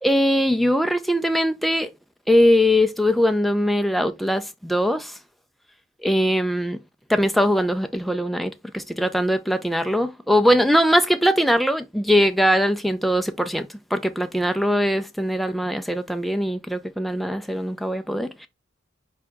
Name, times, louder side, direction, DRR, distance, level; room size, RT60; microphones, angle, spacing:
voice 1, 0.0-1.9 2.3-5.2 6.0-6.8 7.1-18.5, equal, ahead, 0.4 m, -21 dB
4.6 x 3.1 x 3.3 m
head